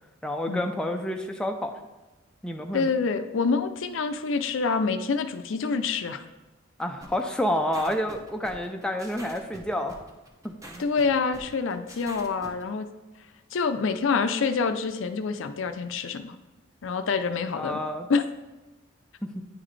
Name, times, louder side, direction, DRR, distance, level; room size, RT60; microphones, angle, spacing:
voice 1, 0.2-1.7 2.4-2.9 6.8-10.0 10.4-10.8 17.6-18.1 19.2-19.4, left 1 dB, 5° left, 3 dB, 0.4 m, -29 dB
voice 2, 2.7-6.2 10.8-12.9 13.5-16.4 16.8-17.8 18.1-18.2, left 4 dB, 70° left, 9 dB, 0.4 m, -26 dB
sound 1, 7.0-12.6, right 1 dB, 15° right, 0.8 m, -45 dB
9.7 x 3.9 x 3.2 m, 1.1 s
head